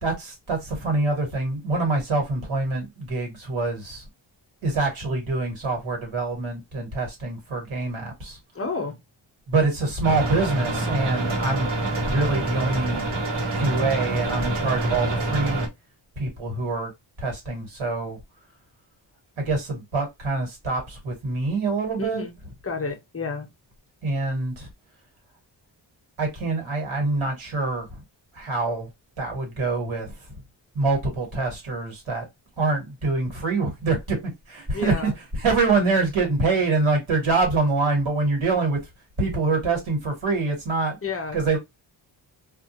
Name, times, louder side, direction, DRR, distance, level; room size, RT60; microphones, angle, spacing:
voice 1, 0.0-4.0 4.6-8.4 9.5-11.7 12.1-13.0 13.5-15.7 16.2-16.9 17.2-18.2 19.4-22.2 24.0-24.7 26.2-28.0 28.3-28.9 29.2-30.1 30.7-32.2 32.6-34.2 34.5-38.8 39.2-41.0 41.3-41.6, right 3 dB, 85° right, 1.5 m, -25 dB
voice 2, 8.5-9.0 22.0-22.3 22.6-23.5 34.7-35.1 41.0-41.4, left 3 dB, 30° left, 0.6 m, -30 dB
sound 1, 10.0-15.7, right 2 dB, 65° right, 1.1 m, -26 dB
2.3 x 2.3 x 2.7 m
wide cardioid pair, 115°, 46 cm